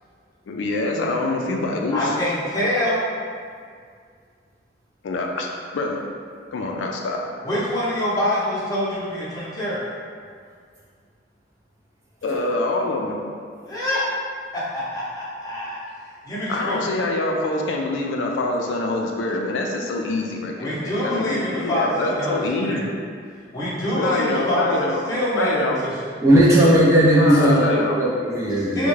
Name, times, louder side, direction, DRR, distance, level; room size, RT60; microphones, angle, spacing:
voice 1, 0.5-2.2 5.0-5.5 5.7-6.0 6.5-7.2 12.2-13.2 16.5-22.9 23.9-25.0 25.4-25.8 27.1-27.9, left 2 dB, 80° left, 1 dB, 0.3 m, -25 dB
voice 2, 1.9-3.0 7.4-9.8 13.7-14.0 14.5-15.8 16.3-16.8 20.6-22.9 23.5-24.6 25.1-25.9 28.8-28.9, left 1 dB, 20° left, -9 dB, 0.7 m, -25 dB
voice 3, 26.2-28.9, right 1 dB, 15° right, -6 dB, 0.4 m, -16 dB
3.5 x 2.1 x 3.1 m, 2.1 s
head